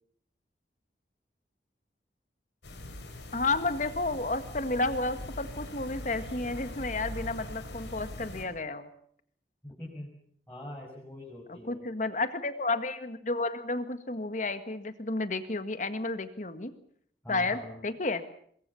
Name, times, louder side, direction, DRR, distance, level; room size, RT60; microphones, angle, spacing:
sound 1, 2.6-8.4, left 1 dB, 80° left, 4.7 m, -42 dB
voice 1, 3.3-8.9 11.5-16.7 17.3-18.2, left 2 dB, 45° left, 11 dB, 1.8 m, -31 dB
voice 2, 9.6-10.1 10.5-11.9 17.2-17.8, left 1 dB, 10° left, -5 dB, 6.2 m, -43 dB
23.0 x 22.5 x 7.1 m, 0.64 s
head